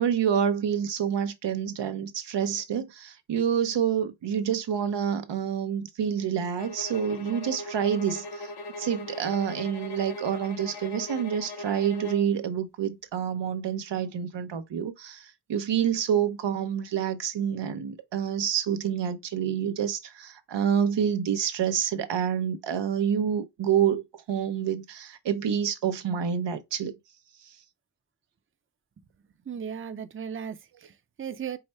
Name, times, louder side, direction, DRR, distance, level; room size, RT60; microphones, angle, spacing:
voice 1, 0.0-8.5 8.8-26.9, right 8 dB, 90° right, 0.7 m, -28 dB
sound 1, 6.6-12.3, left 1 dB, 65° left, 1.0 m, -39 dB
voice 2, 29.5-31.6, right 7 dB, 30° right, 0.5 m, -36 dB
4.7 x 2.1 x 4.3 m
wide cardioid pair, 70°, 41 cm